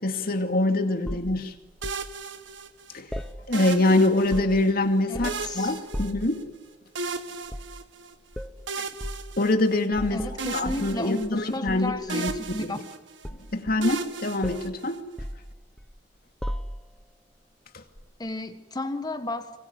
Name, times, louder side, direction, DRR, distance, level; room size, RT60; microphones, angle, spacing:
voice 1, 0.0-1.5 2.9-3.1 3.5-6.4 9.4-10.2 10.5-12.3 13.5-15.0, left 2 dB, 55° left, 2.5 m, -24 dB
sound 1, 1.0-2.1 3.1-3.8 4.1-4.7 5.1-5.5 5.9-6.3 7.5-7.8 8.3-8.6 9.0-9.3 9.9-11.4 11.7-12.6 13.2-14.1 14.4-14.7 15.2-16.0 16.4-17.0 18.0-18.1, equal, 5° left, 1.2 m, -36 dB
sound 2, 1.8-3.0 3.5-4.7 5.2-6.6 7.0-8.1 8.7-10.0 10.4-11.8 12.1-13.3 13.8-15.2, right 4 dB, 85° right, 1.8 m, -36 dB
voice 2, 5.1-5.9 10.1-12.9 18.2-19.6, left 2 dB, 20° left, 1.5 m, -33 dB
25.5 x 23.0 x 9.6 m
head